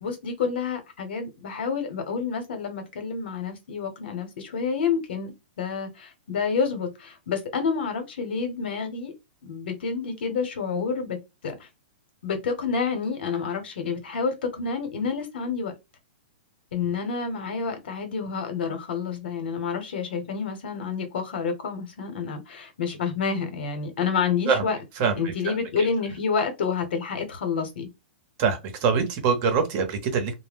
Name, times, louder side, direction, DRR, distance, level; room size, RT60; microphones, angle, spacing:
voice 1, 0.0-9.1 9.4-11.2 11.4-11.5 12.2-15.7 16.7-24.8 25.2-27.9, left 5 dB, 75° left, 1.0 m, -29 dB
voice 2, 25.0-25.6 28.4-30.3, right 5 dB, 40° right, 0.8 m, -24 dB
2.1 x 2.1 x 3.5 m
hypercardioid pair, 145°, 6 cm